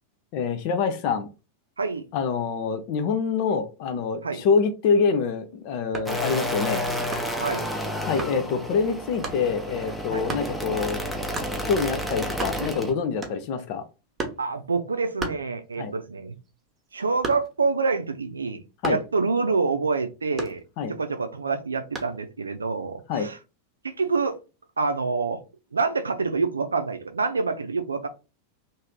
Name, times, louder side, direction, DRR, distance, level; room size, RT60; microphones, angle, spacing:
voice 1, 0.3-1.3 2.1-6.8 8.0-11.0 11.6-13.8 15.8-15.9 18.8-19.0 20.8-20.9 23.1-23.3, left 5 dB, 45° left, 0.5 m, -25 dB
sound 1, 5.9-6.2 7.1-7.5 8.2-8.4 9.2-9.5 10.3-10.5 11.3-11.6 12.0-12.1 12.3-12.8 13.2-13.6 14.2-14.5 15.2-15.9 16.3-17.7 18.8-19.2 20.4-21.0 22.0-22.2, right 3 dB, 20° right, 0.9 m, -34 dB
sound 2, 6.1-12.9, equal, 5° left, 0.7 m, -30 dB
voice 2, 7.4-7.8 10.1-10.3 14.4-16.4 16.9-20.6 20.9-23.4 23.8-24.4 24.8-25.4 25.7-28.1, right 4 dB, 75° right, 0.5 m, -27 dB
3.1 x 2.6 x 3.6 m
figure-of-eight pair, 90°, 0 cm